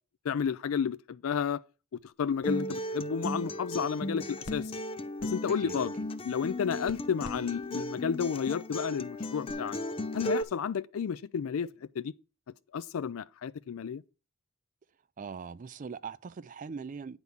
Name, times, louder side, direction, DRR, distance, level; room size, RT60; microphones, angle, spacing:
voice 1, 0.2-1.6 2.2-4.7 5.2-5.9 6.2-9.8 10.1-11.7 12.0-12.1 12.7-14.0, left 7 dB, 80° left, 0.4 m, -31 dB
sound 1, 2.0-9.5, left 2 dB, 55° left, 0.9 m, -55 dB
Acoustic guitar, 2.4-10.4, left 1 dB, 25° left, 0.5 m, -36 dB
voice 2, 5.5-5.9 15.2-17.2, right 5 dB, 40° right, 0.4 m, -41 dB
9.4 x 4.0 x 6.9 m
head